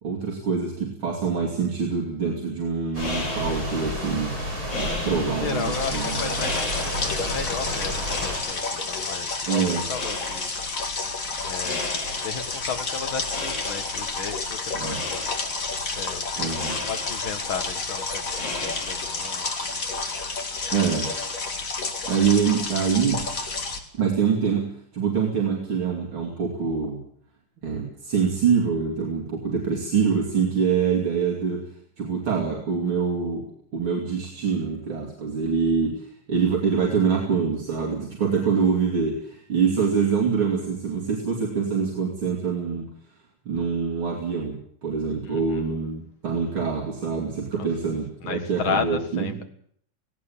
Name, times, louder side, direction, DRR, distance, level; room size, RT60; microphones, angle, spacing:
voice 1, 0.0-4.4 4.8-6.3 9.5-9.8 14.7-15.0 16.4-16.8 20.7-21.1 22.1-23.2 23.9-27.0 27.6-31.7 32.0-33.5 33.7-42.9 43.5-49.4, right 6 dB, 75° right, -1 dB, 3.7 m, -25 dB
sound 1, 2.7-19.4, left 2 dB, 60° left, 4.1 m, -37 dB
sound 2, 2.9-8.4, equal, 45° right, 7.7 m, -31 dB
voice 2, 4.9-10.5 11.4-11.9 12.2-15.3 16.0-19.8 45.2-45.7 47.6-47.7 48.2-49.5, left 6 dB, 75° left, 8 dB, 2.5 m, -34 dB
sound 3, 5.4-23.8, left 3 dB, 40° left, 2.5 m, -30 dB
17.5 x 17.5 x 8.7 m, 0.63 s
omnidirectional pair, 2.3 m